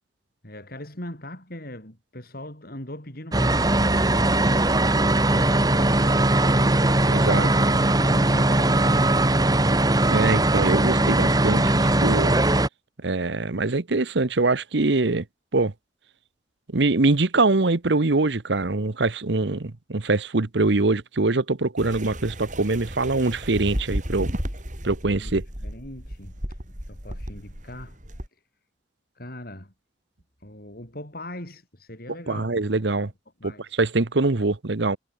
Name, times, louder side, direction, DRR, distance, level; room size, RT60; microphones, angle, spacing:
voice 1, 0.4-4.8 5.3-9.6 25.2-25.3 25.6-28.0 28.3-28.4 29.2-29.7 30.4-32.5 33.4-33.8, left 1 dB, 50° left, 7.2 m, -40 dB
sound 1, 3.3-12.7, right 1 dB, 20° right, 1.6 m, -20 dB
voice 2, 7.1-7.5 10.1-12.4 13.0-15.2 15.5-15.7 16.7-24.3 24.8-25.4 32.3-33.1 33.4-33.5 33.8-35.0, right 3 dB, 65° right, 1.0 m, -23 dB
sound 2, 21.8-28.3, equal, 40° right, 6.9 m, -33 dB
head